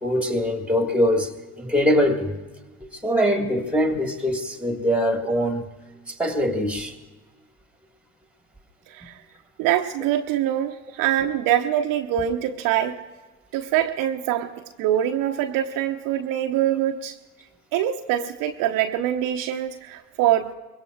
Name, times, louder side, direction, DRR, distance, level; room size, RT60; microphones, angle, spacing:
voice 1, 0.0-2.4 2.9-5.7 6.1-6.9, equal, 5° right, 1.7 m, -23 dB
voice 2, 8.9-9.2 9.6-13.0 13.5-14.5 14.8-17.2 17.7-20.5, right 11 dB, 50° right, 0.9 m, -24 dB
24.5 x 22.0 x 2.4 m
figure-of-eight pair, 60°, 43 cm